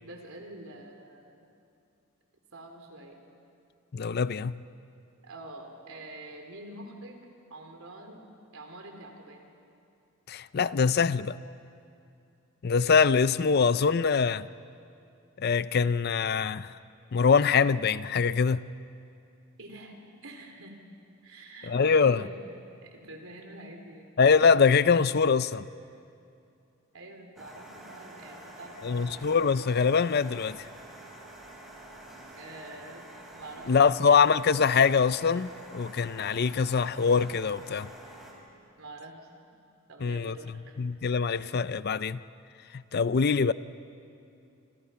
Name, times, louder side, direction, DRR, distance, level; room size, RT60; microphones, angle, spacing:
voice 1, 0.0-1.5 2.5-3.2 5.2-8.2 8.5-9.5 19.6-20.0 20.2-20.8 21.2-22.3 22.8-24.2 26.9-29.5 32.4-33.0 33.3-34.0 38.8-39.3 39.9-40.8, right 1 dB, 70° right, 3.6 m, -46 dB
voice 2, 3.9-4.5 10.3-11.4 12.6-14.5 15.4-16.7 17.1-18.7 21.7-22.2 24.2-25.7 28.8-30.6 33.7-37.9 40.0-40.3 40.8-42.2 42.7-43.5, left 5 dB, 45° left, 0.5 m, -23 dB
sound 1, 27.4-38.3, right 1 dB, ahead, 4.0 m, -47 dB
28.0 x 26.5 x 5.7 m
head